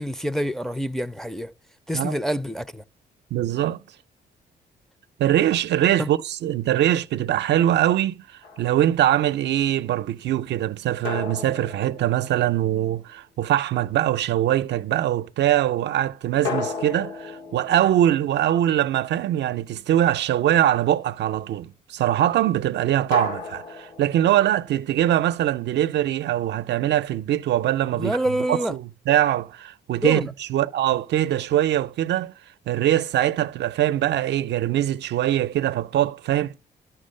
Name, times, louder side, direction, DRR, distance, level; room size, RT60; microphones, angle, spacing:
voice 1, 0.0-1.5 1.9-2.8 6.0-6.1 27.9-28.7 30.0-30.3, equal, ahead, 0.4 m, -26 dB
voice 2, 3.3-3.8 5.2-8.2 8.6-28.2 28.5-32.3 32.7-36.6, right 12 dB, 80° right, 0.5 m, -22 dB
sound 1, 8.4-9.0 11.0-12.9 16.4-19.1 23.1-24.8, left 4 dB, 85° left, 1.6 m, -35 dB
12.0 x 5.9 x 6.4 m
cardioid pair, 85°, 18 cm